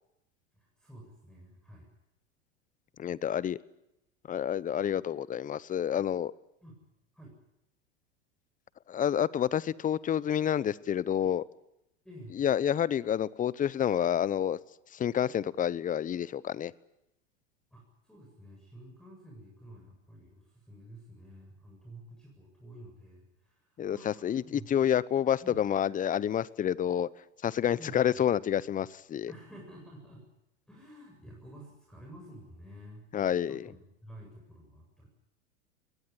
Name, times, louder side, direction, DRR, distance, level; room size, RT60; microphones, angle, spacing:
voice 1, 0.5-1.9 6.6-6.8 7.1-7.3 12.0-12.4 17.7-24.7 25.4-25.6 27.8-28.3 29.3-30.2 30.7-33.1 33.4-35.1, right 1 dB, ahead, -1 dB, 7.5 m, -50 dB
voice 2, 3.0-3.6 4.3-6.3 8.9-11.4 12.4-14.6 14.9-16.7 23.8-27.1 27.4-29.3 33.1-33.6, left 9 dB, 20° left, 21 dB, 0.8 m, -29 dB
22.0 x 19.0 x 9.7 m, 0.86 s
hypercardioid pair, 95°, 36 cm